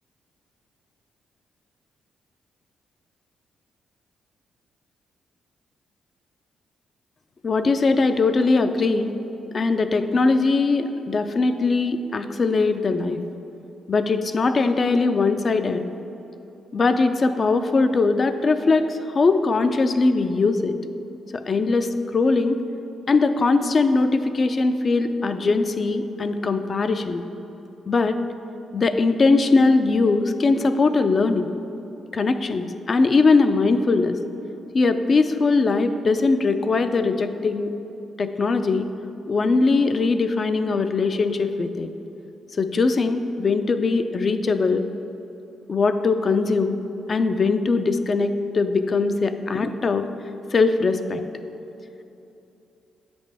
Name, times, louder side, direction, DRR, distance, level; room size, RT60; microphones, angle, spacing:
voice 1, 7.4-9.1 9.5-13.2 13.9-15.8 16.7-20.8 21.3-22.6 23.1-27.2 27.9-28.2 28.7-31.5 32.1-34.2 34.7-37.7 38.2-38.9 39.3-41.9 42.6-44.8 45.7-46.8 47.1-50.0 50.5-51.2, left 3 dB, 45° left, 9 dB, 0.4 m, -21 dB
8.1 x 5.2 x 3.4 m, 3.0 s
cardioid pair, 70°, 0 cm